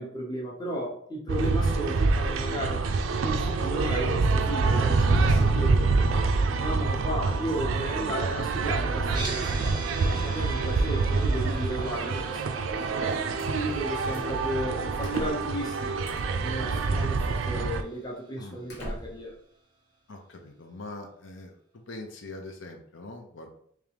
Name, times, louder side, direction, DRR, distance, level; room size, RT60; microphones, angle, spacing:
voice 1, 0.0-2.8 3.2-5.9 6.6-12.9 13.5-16.0 16.4-19.3, right 1 dB, 20° left, -2 dB, 0.8 m, -34 dB
sound 1, 1.3-17.8, right 3 dB, 80° right, 0.4 m, -26 dB
sound 2, 9.0-19.1, right 3 dB, 20° right, 0.6 m, -44 dB
sound 3, 12.7-13.5 14.1-14.4 15.0-15.6 16.0-16.5 17.4-17.5 18.1-18.2 18.7-19.3, equal, 60° left, 1.1 m, -41 dB
voice 2, 20.1-21.6 21.9-23.6, left 2 dB, 75° left, 3 dB, 0.7 m, -42 dB
3.6 x 3.1 x 3.3 m, 0.63 s
head